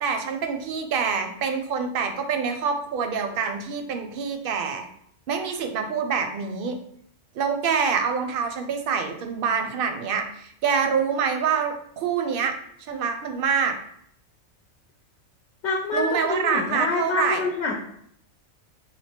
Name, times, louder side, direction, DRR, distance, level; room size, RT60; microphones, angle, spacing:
voice 1, 0.0-4.9 5.3-6.8 7.4-12.6 12.9-13.8 15.9-17.5, right 6 dB, 60° right, 6 dB, 0.6 m, -26 dB
voice 2, 15.6-17.7, left 3 dB, 70° left, -1 dB, 0.9 m, -26 dB
3.3 x 2.6 x 4.3 m, 0.69 s
omnidirectional pair, 1.3 m